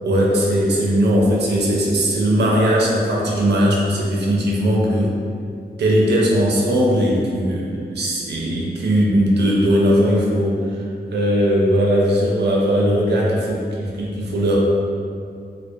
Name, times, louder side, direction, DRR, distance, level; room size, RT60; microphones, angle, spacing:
voice 1, 0.0-5.2 5.8-14.6, equal, 90° right, -3 dB, 0.4 m, -19 dB
2.6 x 2.0 x 2.3 m, 2.4 s
wide cardioid pair, 165°, 17 cm